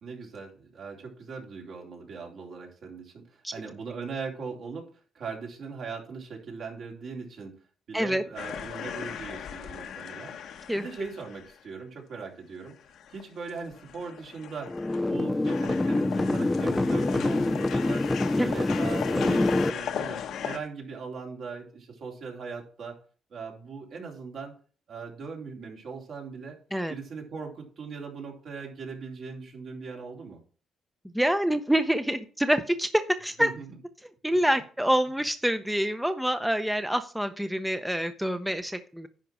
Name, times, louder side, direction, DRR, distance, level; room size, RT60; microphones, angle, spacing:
voice 1, 0.0-4.9 5.1-7.5 7.9-10.3 10.7-12.7 13.1-14.7 15.1-18.1 18.4-23.0 23.3-24.5 24.9-26.6 26.9-30.4 33.4-33.7, right 5 dB, 65° right, 0 dB, 3.3 m, -39 dB
sound 1, 8.4-11.7 12.2-12.3 12.6-15.2 15.4-20.6, left 8 dB, 75° left, 1.2 m, -38 dB
sound 2, 14.7-19.7, left 2 dB, 15° left, 0.4 m, -26 dB
voice 2, 31.1-33.5 34.2-39.1, equal, 5° right, 9 dB, 0.7 m, -26 dB
10.5 x 4.6 x 6.1 m, 0.39 s
cardioid pair, 90°, 0 cm